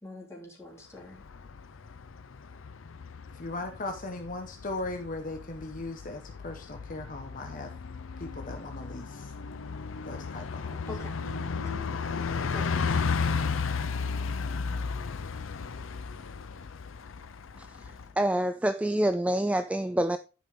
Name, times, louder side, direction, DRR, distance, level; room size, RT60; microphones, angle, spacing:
voice 1, 0.0-1.2 10.9-11.2 11.6-11.8 12.5-12.8, left 2 dB, 15° left, 3.2 m, -44 dB
Bus, 1.0-18.1, left 5 dB, 80° left, 0.6 m, -34 dB
voice 2, 3.3-7.7 8.2-9.3 10.0-10.8 14.5-14.8, left 2 dB, 40° left, 1.1 m, -38 dB
voice 3, 18.2-20.2, right 1 dB, 5° right, 0.3 m, -26 dB
11.0 x 5.3 x 3.7 m
head